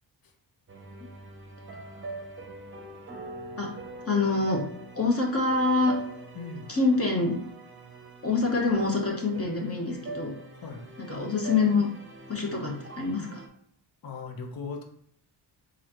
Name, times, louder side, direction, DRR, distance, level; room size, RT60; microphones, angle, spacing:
sound 1, 0.7-13.5, right 2 dB, 25° right, 0.8 m, -42 dB
voice 1, 4.1-4.6 4.9-5.9 6.7-7.4 8.2-10.3 11.0-11.9 12.3-13.4, left 3 dB, 30° left, -1 dB, 1.2 m, -25 dB
voice 2, 6.3-6.7 10.5-10.8 14.0-14.8, left 4 dB, 50° left, 3 dB, 0.9 m, -38 dB
4.1 x 3.8 x 3.1 m, 0.64 s
cardioid pair, 100°, 46 cm